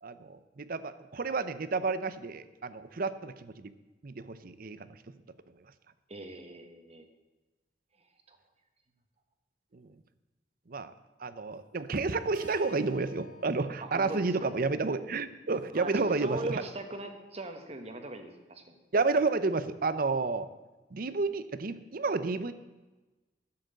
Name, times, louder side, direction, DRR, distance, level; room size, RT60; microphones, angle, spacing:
voice 1, 0.0-3.7 4.0-4.8 9.7-9.9 10.7-10.9 11.2-16.6 18.9-20.5 20.9-22.5, right 3 dB, 55° right, 13 dB, 0.7 m, -31 dB
voice 2, 6.1-7.1 8.3-8.4 13.8-14.5 15.7-18.7, right 2 dB, 35° right, 6 dB, 1.3 m, -40 dB
Keyboard (musical), 12.3-16.6, left 2 dB, 80° right, 2.7 m, -54 dB
11.5 x 7.8 x 7.7 m, 1.2 s
head